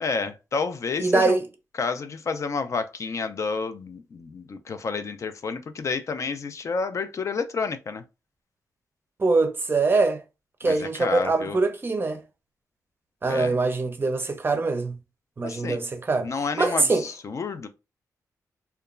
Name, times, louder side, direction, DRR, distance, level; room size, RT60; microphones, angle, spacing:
voice 1, 0.0-1.4 1.8-8.0 10.6-11.6 13.3-13.6 15.4-15.8 16.2-17.7, left 4 dB, 50° left, 0.3 m, -30 dB
voice 2, 1.0-1.5 9.2-10.2 10.6-12.2 13.2-15.0 15.4-16.3 16.6-17.0, right 3 dB, 35° right, 0.5 m, -23 dB
2.8 x 2.2 x 2.3 m
cardioid pair, 85°, 6 cm